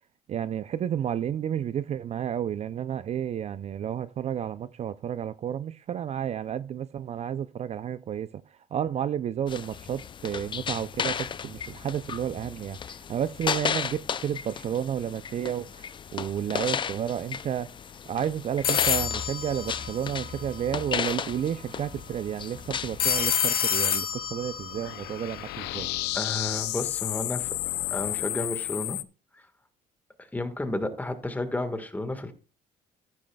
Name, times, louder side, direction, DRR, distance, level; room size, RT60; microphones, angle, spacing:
voice 1, 0.3-8.4 8.7-17.7 18.1-25.9, right 9 dB, 40° right, 0.4 m, -31 dB
sound 1, 9.5-23.3, left 7 dB, 30° left, 0.4 m, -34 dB
sound 2, 18.6-20.7 23.0-26.0, left 8 dB, 60° left, 1.4 m, -28 dB
sound 3, 24.7-29.0, left 17 dB, 90° left, 0.5 m, -32 dB
voice 2, 26.1-27.6 27.9-29.0 29.3-29.4 30.3-32.3, left 2 dB, 10° left, 1.5 m, -32 dB
14.0 x 9.6 x 2.3 m
cardioid pair, 110°, 17 cm